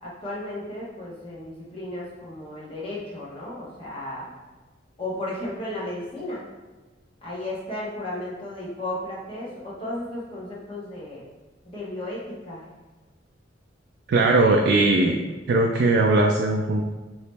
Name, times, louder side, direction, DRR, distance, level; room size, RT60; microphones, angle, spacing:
voice 1, 0.0-4.3 5.0-6.4 7.2-11.2 11.6-12.6, left 1 dB, 30° left, -7 dB, 1.1 m, -34 dB
voice 2, 14.1-15.2 15.5-16.8, right 2 dB, 60° right, 0 dB, 0.3 m, -19 dB
3.1 x 2.9 x 3.3 m, 1.2 s
head